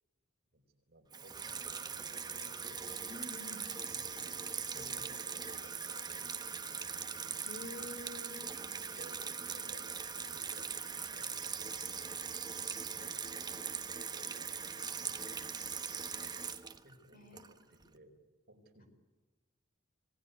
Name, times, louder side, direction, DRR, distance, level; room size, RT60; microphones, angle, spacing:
voice 1, 0.5-2.9 3.9-4.3 4.7-6.3 6.6-6.8 7.6-7.9 8.7-9.2 9.5-11.7 12.9-13.6 13.9-15.3 16.8-18.1 18.5-18.9, right 1 dB, 50° right, 4 dB, 4.7 m, -60 dB
Water tap faucet / Sink (filling or washing), 1.1-17.8, right 6 dB, 20° right, 1.1 m, -41 dB
sound 1, 2.4-11.9, left 3 dB, 20° left, 4.7 m, -51 dB
voice 2, 3.1-3.7 7.4-8.4 17.1-17.4, left 2 dB, 45° left, 8 dB, 4.3 m, -47 dB
26.0 x 19.0 x 9.4 m, 1.3 s
head